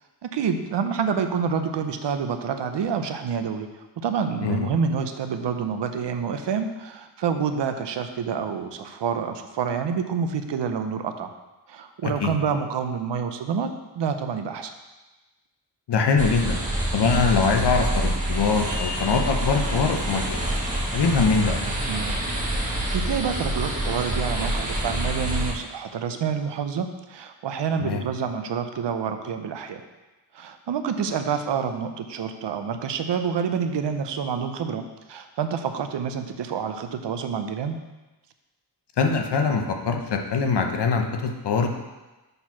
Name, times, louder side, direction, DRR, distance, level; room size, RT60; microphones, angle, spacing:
voice 1, 0.2-3.7 4.0-11.3 11.7-14.7 21.9-22.2 22.9-29.8 30.3-34.8 35.1-37.8, right 6 dB, 75° right, 7 dB, 0.8 m, -28 dB
voice 2, 12.0-12.3 15.9-16.6 16.9-20.4 20.9-21.6 27.8-28.0 39.0-41.7, left 4 dB, 70° left, 4 dB, 0.9 m, -23 dB
sound 1, 16.2-25.5, right 1 dB, 20° right, 1.5 m, -27 dB
6.7 x 4.5 x 5.8 m, 1.1 s
wide cardioid pair, 140°, 43 cm